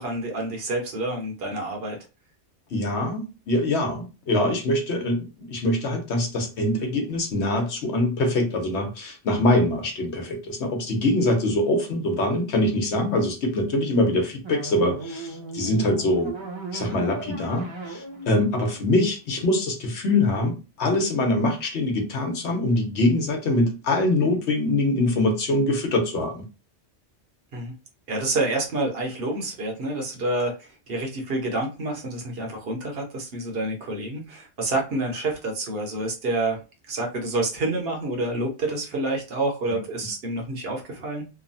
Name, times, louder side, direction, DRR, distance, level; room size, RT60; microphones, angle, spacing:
voice 1, 0.0-2.0 27.5-27.7 28.1-41.3, right 2 dB, 60° right, 0.9 m, -28 dB
voice 2, 2.7-16.3 16.7-26.4, left 1 dB, 70° left, 1.1 m, -24 dB
sound 1, 14.4-19.6, right 2 dB, 30° right, 0.6 m, -36 dB
3.0 x 2.1 x 2.6 m
omnidirectional pair, 1.2 m